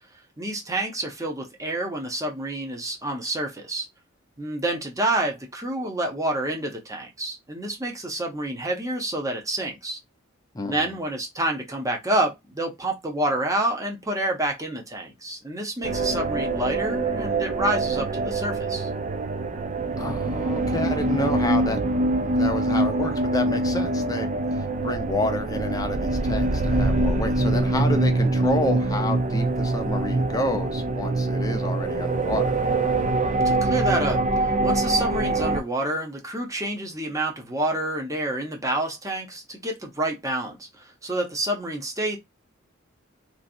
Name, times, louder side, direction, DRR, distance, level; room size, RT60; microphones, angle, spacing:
voice 1, 0.4-3.9 4.4-10.0 10.7-18.9 33.3-42.2, right 1 dB, 15° right, 0.8 m, -28 dB
voice 2, 10.5-10.9 20.0-24.3 24.8-32.5, left 1 dB, 20° left, 0.6 m, -29 dB
sound 1, 15.8-35.6, right 2 dB, 35° right, 0.4 m, -24 dB
3.1 x 2.5 x 2.5 m
head